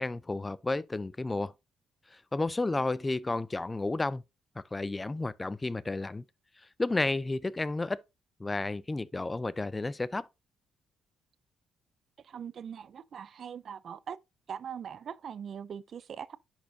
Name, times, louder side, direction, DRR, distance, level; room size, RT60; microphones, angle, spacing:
voice 1, 0.0-1.5 2.1-4.2 4.6-6.2 6.8-8.0 8.4-10.3, left 2 dB, 20° left, 0.3 m, -32 dB
voice 2, 12.2-14.2 14.5-16.4, right 8 dB, 55° right, 0.4 m, -41 dB
10.5 x 4.3 x 2.6 m
cardioid pair, 90°, 0 cm